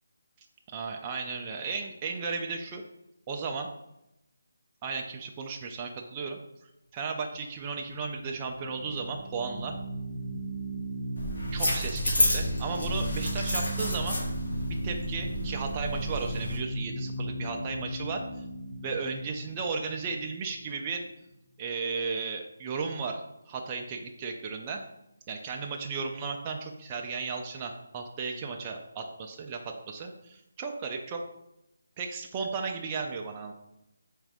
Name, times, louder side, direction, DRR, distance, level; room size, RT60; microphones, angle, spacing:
voice 1, 0.7-2.8 3.3-3.7 4.8-6.4 6.9-9.7 11.5-14.2 14.7-18.2 18.8-21.1 21.6-24.8 25.3-31.2 32.0-33.5, right 4 dB, 20° right, 1 dB, 0.3 m, -35 dB
sound 1, 7.7-20.8, right 1 dB, 25° left, 0.8 m, -37 dB
sound 2, 11.2-16.6, left 1 dB, 85° left, 1.6 m, -30 dB
4.0 x 3.6 x 3.4 m, 0.87 s
figure-of-eight pair, 170°, 0 cm